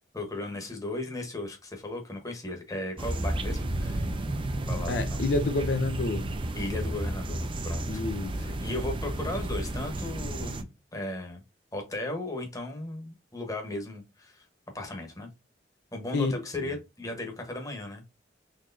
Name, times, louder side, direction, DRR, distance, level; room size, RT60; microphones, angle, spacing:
voice 1, 0.1-4.1 4.7-5.3 6.5-7.8 8.3-10.6 10.9-11.4 11.7-14.4 14.7-15.3 15.9-18.0, left 2 dB, 20° left, 1.0 m, -36 dB
sound 1, 3.0-10.6, right 1 dB, 30° right, 0.5 m, -32 dB
voice 2, 4.9-6.3 7.9-8.3 16.1-16.4, left 3 dB, 65° left, 0.5 m, -28 dB
4.0 x 3.0 x 2.6 m
head